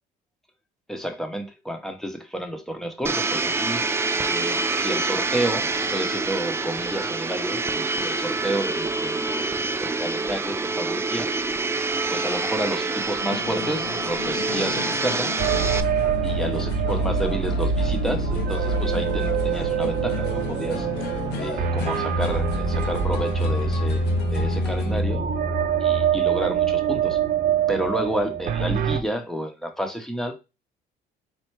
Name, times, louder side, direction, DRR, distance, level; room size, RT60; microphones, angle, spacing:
voice 1, 0.9-3.8 4.2-9.5 9.8-11.3 12.1-15.3 16.2-20.9 21.3-25.3 25.8-27.2 27.7-30.3, right 1 dB, ahead, 0.8 m, -30 dB
Domestic sounds home sounds, 3.0-15.8, right 3 dB, 15° right, 0.3 m, -26 dB
sound 1, 13.2-25.0, left 7 dB, 80° left, 0.9 m, -35 dB
sound 2, 15.4-29.0, right 5 dB, 55° right, 0.6 m, -24 dB
4.4 x 2.1 x 4.5 m
cardioid pair, 110°, 17 cm